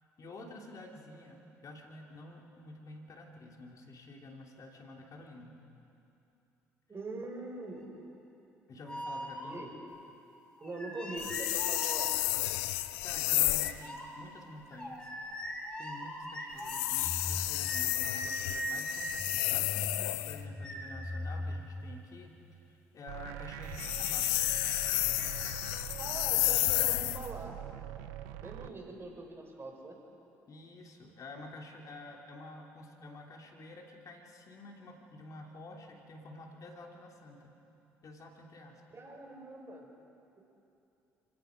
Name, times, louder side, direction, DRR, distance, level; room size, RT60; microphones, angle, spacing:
voice 1, 0.2-5.6 8.7-9.7 13.0-15.1 15.8-22.3 22.6-24.6 28.6-28.7 30.5-37.5 38.0-39.0, left 2 dB, 50° left, 1 dB, 3.0 m, -49 dB
voice 2, 6.9-7.9 9.4-9.7 10.6-12.1 26.0-27.6 28.4-30.0 38.9-39.8 40.4-40.5, right 2 dB, 30° right, 1 dB, 5.8 m, -43 dB
sound 1, 8.8-9.9 10.6-12.6 13.6-21.8, equal, 10° left, 5.1 m, -40 dB
sound 2, 11.2-13.8 16.6-20.4 23.6-27.3, left 18 dB, 75° left, 0.6 m, -31 dB
sound 3, 23.1-28.7, right 12 dB, 75° right, 0.8 m, -43 dB
30.0 x 17.0 x 5.2 m, 2.8 s
hypercardioid pair, 50°, 8 cm